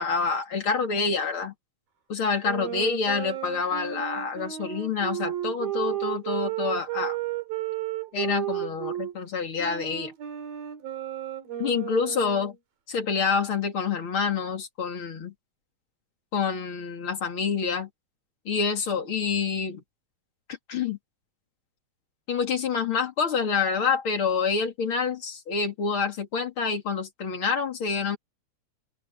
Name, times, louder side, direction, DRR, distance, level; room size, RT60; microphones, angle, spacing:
voice 1, 0.0-1.5 2.1-7.2 8.1-10.1 11.6-12.6 12.9-15.3 16.3-17.9 18.4-19.8 20.7-21.0 22.3-28.2, left 5 dB, 40° left, 3.0 m, -27 dB
sound 1, 2.4-9.1 9.6-12.6, right 12 dB, 85° right, 4.4 m, -33 dB
open air
omnidirectional pair, 4.0 m